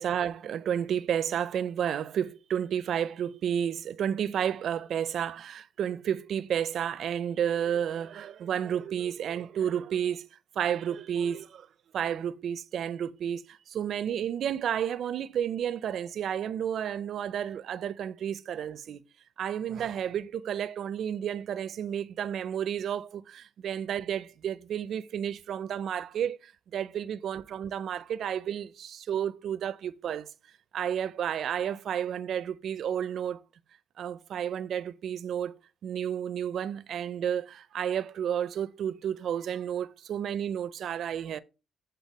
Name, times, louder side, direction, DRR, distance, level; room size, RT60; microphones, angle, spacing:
voice 1, 0.0-10.3 10.6-11.7 11.9-19.0 19.4-30.3 30.7-33.4 34.0-35.5 35.8-41.4, right 9 dB, 65° right, 0.4 m, -31 dB
8.1 x 3.9 x 4.1 m
cardioid pair, 90°, 0 cm